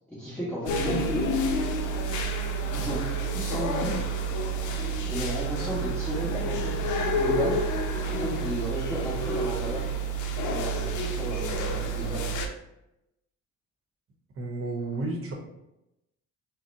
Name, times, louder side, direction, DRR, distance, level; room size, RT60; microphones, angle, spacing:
voice 1, 0.1-1.3 2.7-4.0 5.0-7.6 8.1-9.9 10.4-12.4, right 1 dB, 5° left, -12 dB, 1.3 m, -34 dB
sound 1, 0.7-12.5, right 2 dB, 85° left, 0.5 m, -29 dB
voice 2, 14.4-15.3, right 2 dB, 45° right, 1 dB, 0.9 m, -31 dB
3.9 x 2.1 x 2.7 m, 0.88 s
cardioid pair, 90°, 30 cm